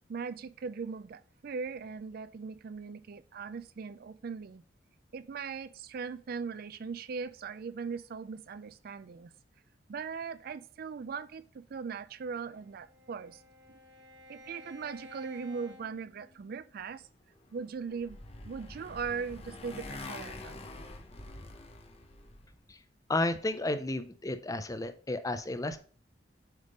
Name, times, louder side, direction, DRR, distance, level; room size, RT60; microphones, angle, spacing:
voice 1, 0.1-4.6 5.1-9.3 9.9-13.4 14.3-17.0 17.5-18.2 18.4-20.6, right 5 dB, 55° right, 0.4 m, -39 dB
Bowed string instrument, 12.3-16.8, left 1 dB, 85° right, 1.8 m, -54 dB
Motorcycle, 17.5-22.5, left 2 dB, 35° left, 1.0 m, -45 dB
voice 2, 23.1-25.8, left 2 dB, 20° left, 0.5 m, -32 dB
8.0 x 3.6 x 5.0 m
head